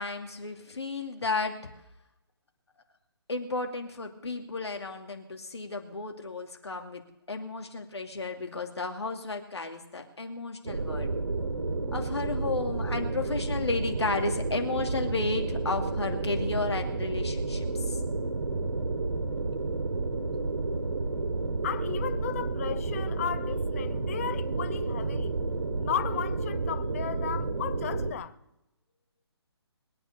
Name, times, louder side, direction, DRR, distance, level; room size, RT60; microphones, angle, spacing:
voice 1, 0.0-1.5 3.3-7.0 7.3-11.1 11.9-18.0, left 3 dB, 75° left, 2.6 m, -33 dB
sound 1, 10.6-28.1, right 3 dB, 75° right, 2.7 m, -31 dB
voice 2, 21.6-25.4 25.8-28.3, left 9 dB, 35° left, 0.7 m, -35 dB
21.5 x 8.7 x 6.8 m
figure-of-eight pair, 145°, 14 cm